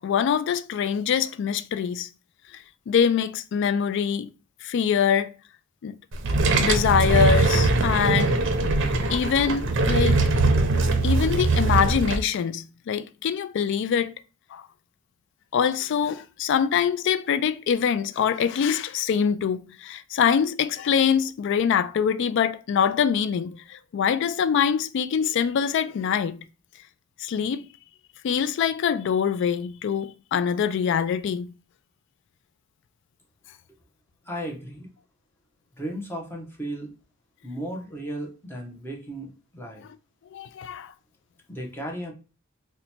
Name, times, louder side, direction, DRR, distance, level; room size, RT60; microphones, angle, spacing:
voice 1, 0.0-2.1 2.5-4.3 4.6-5.3 5.8-6.0 6.6-8.3 9.1-10.2 11.0-14.1 14.5-14.6 15.5-26.4 27.2-27.7 28.2-31.5 40.3-40.9, left 7 dB, 60° left, 0.3 m, -24 dB
sound 1, 6.1-12.2, right 3 dB, 60° right, 0.5 m, -21 dB
voice 2, 34.3-34.9 35.8-36.9 37.4-39.8 41.5-42.1, right 1 dB, 10° left, 0.7 m, -35 dB
2.8 x 2.2 x 4.1 m
head